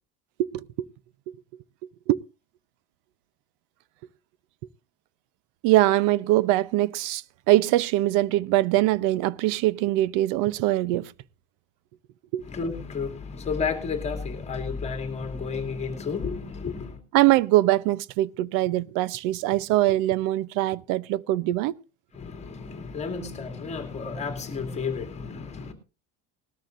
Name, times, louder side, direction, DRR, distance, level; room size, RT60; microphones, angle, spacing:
voice 1, 0.4-0.9 2.1-2.2 5.6-11.1 12.3-12.4 17.1-21.8, right 16 dB, 70° right, 0.7 m, -22 dB
voice 2, 12.4-17.0 22.1-25.7, left 5 dB, 20° left, 2.5 m, -32 dB
19.5 x 13.5 x 2.5 m
cardioid pair, 165°, 32 cm